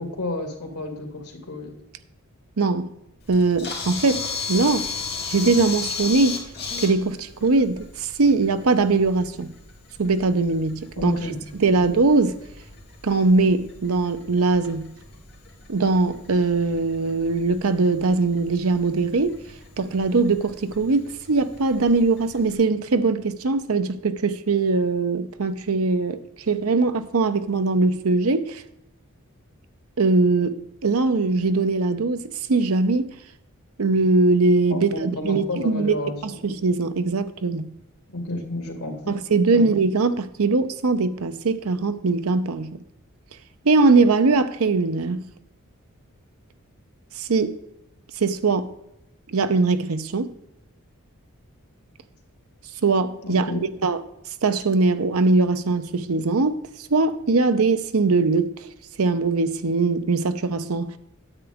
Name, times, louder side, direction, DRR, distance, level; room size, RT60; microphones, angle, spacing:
voice 1, 0.0-1.7 11.0-11.4 34.7-36.4 38.1-39.0 39.5-39.7 53.2-53.6, left 1 dB, 90° left, 2.5 m, -31 dB
voice 2, 2.6-3.0 3.3-4.9 5.3-6.4 6.8-9.5 10.0-11.3 11.5-12.4 13.0-14.9 15.7-19.4 19.8-26.2 26.5-28.6 30.0-33.1 33.8-36.0 36.2-37.7 39.1-42.8 43.6-45.3 47.2-47.6 48.2-48.7 49.3-50.3 52.8-53.5 53.8-54.0 54.4-56.6 56.9-58.5 59.0-60.9, right 3 dB, 75° right, 0.7 m, -21 dB
Camera, 3.2-22.5, left 5 dB, 45° left, 2.9 m, -37 dB
9.7 x 7.9 x 3.5 m
head